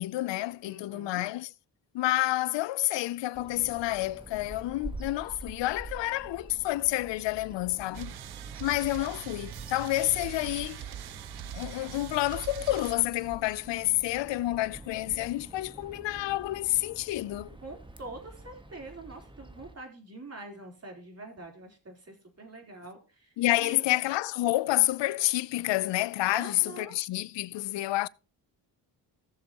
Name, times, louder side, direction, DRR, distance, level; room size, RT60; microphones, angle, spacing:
voice 1, 0.0-1.5 1.9-8.1 8.6-10.9 11.5-17.6 23.4-28.1, left 17 dB, 80° left, 0.5 m, -29 dB
voice 2, 0.6-1.2 17.6-23.8 26.3-27.0, right 2 dB, 35° right, 3.8 m, -45 dB
Bird vocalization bird call bird song, 3.3-19.8, right 1 dB, 10° right, 1.3 m, -47 dB
sound 1, 7.9-12.9, right 11 dB, 60° right, 0.7 m, -42 dB
16.5 x 6.9 x 2.9 m
cardioid pair, 75°, 44 cm